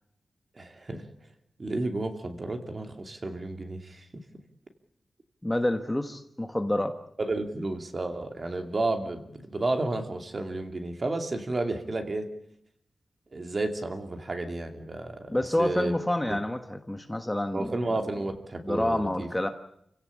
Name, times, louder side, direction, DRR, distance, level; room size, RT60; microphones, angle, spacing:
voice 1, 0.6-1.0 1.6-4.2 7.2-12.3 13.3-15.9 16.3-16.4 17.5-19.3, right 2 dB, 30° right, 5 dB, 2.6 m, -32 dB
voice 2, 5.4-7.0 15.3-17.8 18.6-19.5, left 1 dB, 10° left, 7 dB, 1.2 m, -28 dB
29.5 x 16.5 x 8.5 m, 0.76 s
wide cardioid pair, 160°, 0 cm